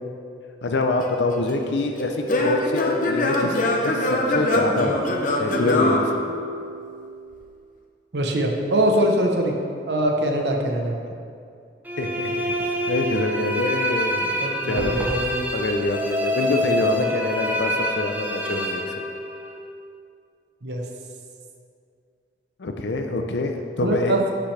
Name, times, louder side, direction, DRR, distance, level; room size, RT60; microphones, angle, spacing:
voice 1, 0.6-5.0 5.4-6.1 12.0-14.3 14.7-15.0 15.5-19.0 22.6-24.2, left 2 dB, 75° left, 4 dB, 0.6 m, -26 dB
Singing / Plucked string instrument, 1.0-6.9, left 1 dB, 50° left, 0.9 m, -24 dB
voice 2, 8.1-9.5 9.9-11.0 14.4-15.4 20.6-20.8 23.8-24.2, right 1 dB, 70° right, 1 dB, 0.9 m, -22 dB
sound 1, 11.9-19.6, equal, 10° right, 0.7 m, -26 dB
sound 2, 14.8-15.3, equal, 5° left, 1.5 m, -31 dB
13.5 x 6.0 x 3.3 m, 2.4 s
head